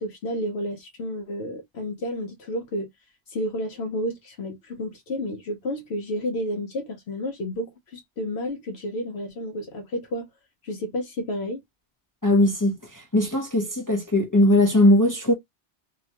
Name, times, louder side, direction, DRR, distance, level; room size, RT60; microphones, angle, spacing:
voice 1, 0.0-2.9 3.3-10.3 10.6-11.6, equal, 70° left, 1.0 m, -31 dB
voice 2, 12.2-12.7 13.1-15.3, left 1 dB, 25° left, 0.4 m, -19 dB
2.9 x 2.1 x 2.8 m
omnidirectional pair, 1.2 m